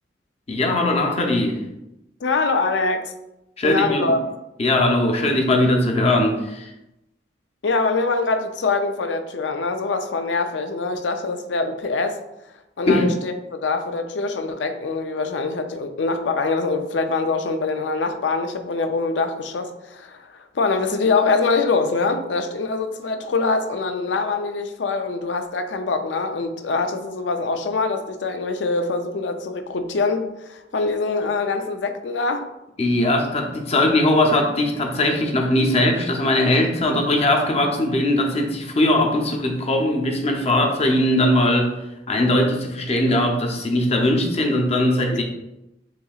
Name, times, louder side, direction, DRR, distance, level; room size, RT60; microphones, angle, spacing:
voice 1, 0.5-1.6 3.6-4.1 4.6-6.7 12.9-13.1 32.8-41.8 42.1-45.2, left 1 dB, 35° left, 2 dB, 0.7 m, -20 dB
voice 2, 2.2-3.1 3.6-4.2 7.6-12.2 12.8-32.5 45.1-45.2, left 3 dB, 80° left, 7 dB, 0.5 m, -24 dB
7.0 x 2.7 x 2.4 m, 0.92 s
head